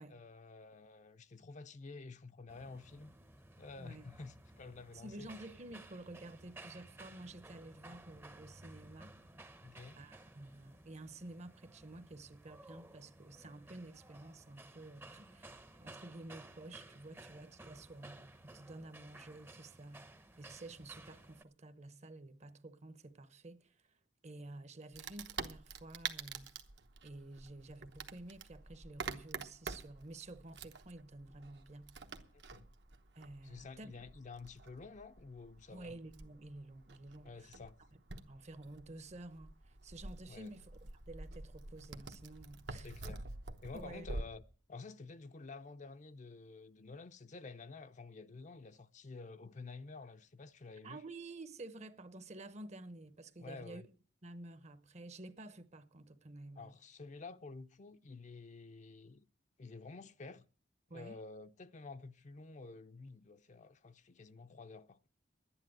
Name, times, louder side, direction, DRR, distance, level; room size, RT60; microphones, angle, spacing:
voice 1, 0.0-3.1 3.6-5.3 9.6-10.0 32.3-32.7 33.4-36.0 37.2-37.8 40.3-40.6 42.8-43.2 43.6-44.4 44.7-51.0 53.4-53.9 56.6-59.2 59.6-60.4 60.9-65.1, left 3 dB, 40° left, 0.6 m, -50 dB
sound 1, 2.5-21.4, right 2 dB, 15° right, 0.7 m, -56 dB
voice 2, 3.8-4.1 5.0-9.1 10.0-20.1 20.4-23.8 24.2-26.6 27.0-31.9 33.1-33.9 35.7-37.5 38.3-43.2 43.7-44.1 50.8-53.8 54.2-56.7 60.9-61.2, right 2 dB, 40° right, 0.9 m, -51 dB
Wood, 24.9-44.2, right 4 dB, 70° right, 1.0 m, -48 dB
11.5 x 10.0 x 7.7 m
head